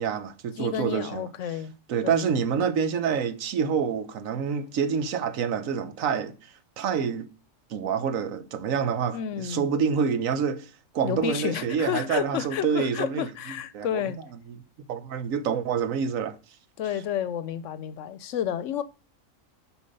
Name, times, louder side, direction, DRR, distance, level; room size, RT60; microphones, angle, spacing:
voice 1, 0.0-1.3 1.9-6.4 6.8-7.3 7.7-13.3 13.7-14.0 14.9-16.4, right 7 dB, 85° right, 1.2 m, -27 dB
voice 2, 0.6-1.7 2.0-2.3 9.1-9.7 11.0-14.2 16.8-18.8, left 10 dB, 70° left, 0.9 m, -30 dB
7.1 x 4.9 x 5.3 m
omnidirectional pair, 1.4 m